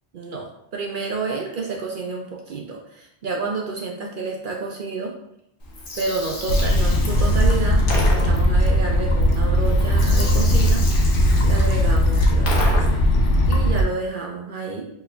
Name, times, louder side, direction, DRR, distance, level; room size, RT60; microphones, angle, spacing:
voice 1, 0.1-5.1 5.9-10.8 11.4-13.0 13.5-14.9, right 4 dB, 60° right, 0 dB, 0.6 m, -29 dB
Gurgling, 5.6-13.1, left 2 dB, 55° left, 0.9 m, -33 dB
sound 1, 6.5-13.8, equal, 85° left, 0.9 m, -18 dB
4.4 x 3.1 x 2.2 m, 0.78 s
omnidirectional pair, 1.2 m